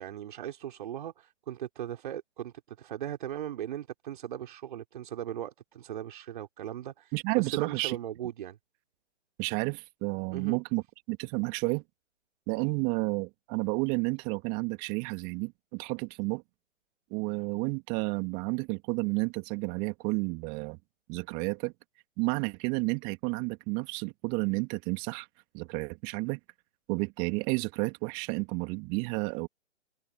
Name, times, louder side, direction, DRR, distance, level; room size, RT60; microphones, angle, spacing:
voice 1, 0.0-8.6 10.3-10.6, right 11 dB, 45° right, 3.4 m, -38 dB
voice 2, 7.1-8.0 9.4-11.8 12.5-16.4 17.1-20.8 21.1-21.7 22.2-25.3 25.5-26.4 26.9-29.5, right 30 dB, 20° right, 2.7 m, -31 dB
figure-of-eight pair, 140°, 36 cm